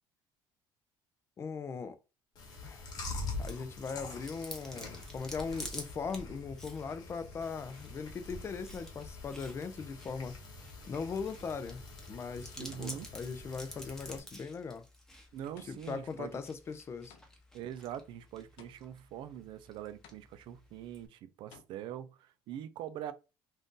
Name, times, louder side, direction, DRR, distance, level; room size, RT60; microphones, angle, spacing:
voice 1, 1.4-2.0 2.6-2.9 3.4-10.3 10.9-11.8 12.1-14.9 15.7-17.2, left 5 dB, 30° left, 0.4 m, -39 dB
Chewing mastication, 2.4-14.2, left 3 dB, 50° left, 1.1 m, -45 dB
Chewing mastication 2, 3.5-21.1, left 1 dB, 5° left, 0.8 m, -52 dB
voice 2, 12.6-13.1 15.3-16.4 17.5-23.1, right 10 dB, 70° right, 0.4 m, -43 dB
sound 1, 12.7-13.3 14.1-14.6 15.6-17.6 18.6-19.2 20.0-20.6 21.5-21.6, left 8 dB, 80° left, 0.6 m, -59 dB
2.6 x 2.6 x 3.6 m
cardioid pair, 125°, 9 cm